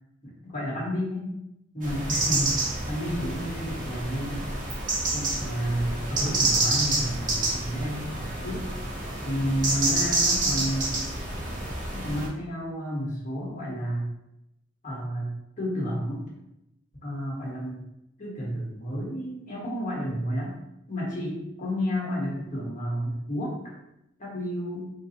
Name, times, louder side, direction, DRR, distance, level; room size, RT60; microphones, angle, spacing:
voice 1, 0.2-1.3 1.7-2.6 2.9-4.5 5.1-8.7 9.2-11.0 11.9-14.1 14.8-16.2 17.0-17.8 18.2-20.6 20.9-23.7 24.2-24.9, equal, 45° left, -4 dB, 1.2 m, -31 dB
sound 1, 1.8-12.3, right 2 dB, 45° right, 1.1 m, -28 dB
3.8 x 2.3 x 4.2 m, 0.84 s
head